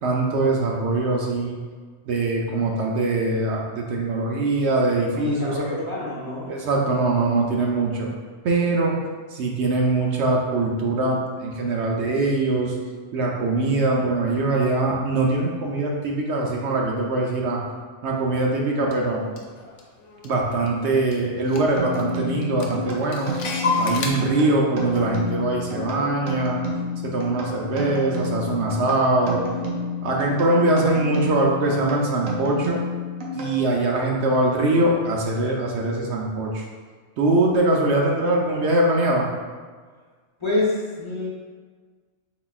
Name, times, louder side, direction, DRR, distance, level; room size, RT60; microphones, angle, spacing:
voice 1, 0.0-1.6 2.1-5.8 6.5-8.1 8.4-9.0 9.3-12.7 13.1-17.6 18.0-19.2 20.2-23.3 23.8-26.6 27.0-29.4 30.0-32.8 33.3-36.6 37.2-39.3, right 2 dB, 70° right, -1 dB, 0.9 m, -22 dB
voice 2, 5.2-6.5 40.4-41.3, left 2 dB, 25° left, -6 dB, 0.8 m, -27 dB
Clock, 18.9-19.0 19.4-20.8 21.1-21.2 21.5-22.1 22.4-24.1, left 4 dB, 75° left, 1.0 m, -28 dB
sound 1, 21.8-33.9, left 1 dB, 90° right, 1.1 m, -30 dB
4.6 x 3.9 x 2.3 m, 1.5 s
omnidirectional pair, 1.3 m